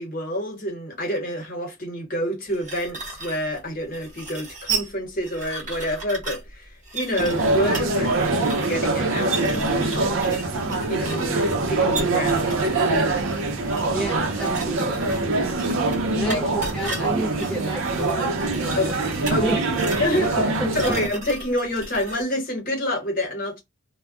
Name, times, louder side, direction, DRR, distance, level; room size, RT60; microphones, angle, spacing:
voice 1, 0.0-10.5 10.9-11.2 11.7-13.2 16.3-16.4 18.8-18.9 19.3-19.5 20.0-23.6, equal, 40° left, 1.1 m, -28 dB
sound 1, 2.5-22.2, right 4 dB, 35° right, 1.0 m, -36 dB
sound 2, 7.2-21.1, right 2 dB, 65° right, 0.6 m, -24 dB
voice 2, 13.9-15.6 16.1-19.0 19.4-19.6 20.6-21.0, right 1 dB, ahead, 0.4 m, -31 dB
2.2 x 2.2 x 3.6 m
head